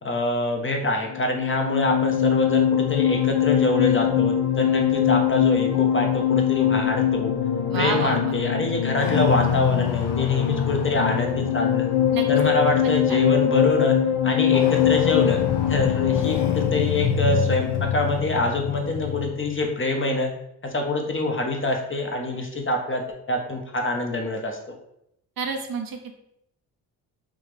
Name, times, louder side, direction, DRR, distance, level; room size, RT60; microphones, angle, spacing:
voice 1, 0.0-7.3 7.7-11.9 12.3-14.0 14.2-15.4 15.7-20.3 20.6-23.0 23.3-24.6, left 1 dB, 25° left, 2 dB, 0.7 m, -25 dB
sound 1, 1.1-19.6, left 10 dB, 65° left, 0.6 m, -22 dB
voice 2, 7.7-8.4 12.1-12.2 12.8-13.3 25.4-26.0, right 5 dB, 50° right, 4 dB, 0.7 m, -29 dB
3.6 x 2.4 x 3.2 m, 0.79 s
supercardioid pair, 50°, 45 cm